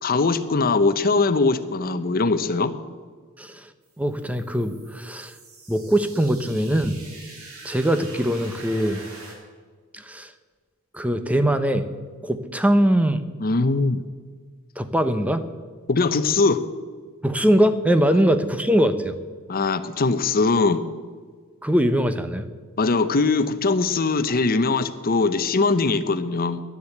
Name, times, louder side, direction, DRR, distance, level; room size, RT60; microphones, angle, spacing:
voice 1, 0.0-2.7 13.4-14.0 15.9-16.6 19.5-20.8 22.8-26.6, left 3 dB, 45° left, 12 dB, 0.8 m, -21 dB
voice 2, 3.4-3.7 4.0-5.3 5.7-7.0 7.6-9.0 9.9-10.3 10.9-11.9 12.2-13.2 14.8-15.4 17.2-19.1 21.6-22.5, equal, 5° right, 10 dB, 0.8 m, -21 dB
sound 1, 3.8-9.3, right 3 dB, 90° right, 3.2 m, -44 dB
12.0 x 10.0 x 8.0 m, 1.5 s
head